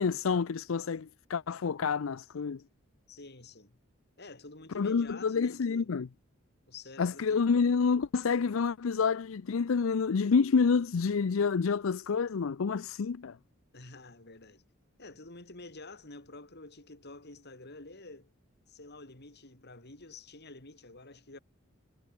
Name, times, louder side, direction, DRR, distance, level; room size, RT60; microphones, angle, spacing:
voice 1, 0.0-2.6 4.8-6.1 7.0-13.4, left 5 dB, 70° left, 0.5 m, -28 dB
voice 2, 3.1-3.8 4.2-6.0 6.7-7.5 13.7-14.6 15.0-18.3 18.7-21.4, left 2 dB, 55° left, 4.4 m, -49 dB
head